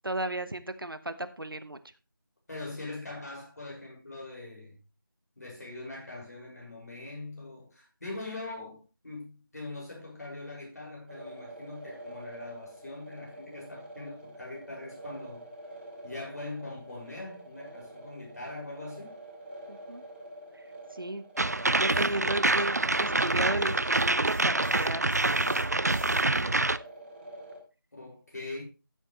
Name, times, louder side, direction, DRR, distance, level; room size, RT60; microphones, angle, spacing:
voice 1, 0.0-1.8 19.7-20.0 20.5-20.6 20.9-21.2 21.8-25.0, right 1 dB, 75° right, 1.2 m, -34 dB
voice 2, 2.5-4.8 5.4-15.5 16.0-19.1 27.9-28.6, left 2 dB, 45° left, 6.1 m, -42 dB
sound 1, 11.1-27.6, right 1 dB, 25° right, 2.6 m, -46 dB
sound 2, 21.4-26.8, right 2 dB, 45° right, 0.4 m, -26 dB
sound 3, 21.9-22.2 22.5-26.5, left 1 dB, 65° left, 4.0 m, -54 dB
14.0 x 7.9 x 3.2 m
figure-of-eight pair, 170°, 12 cm